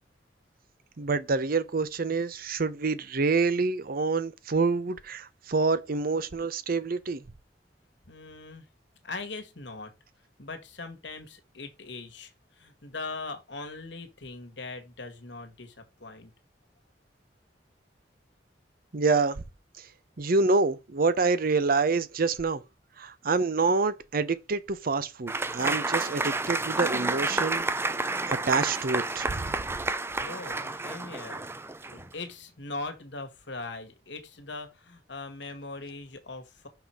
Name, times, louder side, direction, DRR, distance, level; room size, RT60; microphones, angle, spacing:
voice 1, 1.0-7.2 18.9-19.4 20.2-22.6 23.0-27.6 28.3-29.5, right 4 dB, 55° right, 0.7 m, -27 dB
voice 2, 8.1-8.7 9.0-9.9 10.4-16.3 30.2-31.5 31.9-36.7, left 3 dB, 85° left, 1.8 m, -40 dB
Applause / Crowd, 25.3-32.1, right 2 dB, 15° right, 0.5 m, -30 dB
5.8 x 5.7 x 4.6 m
head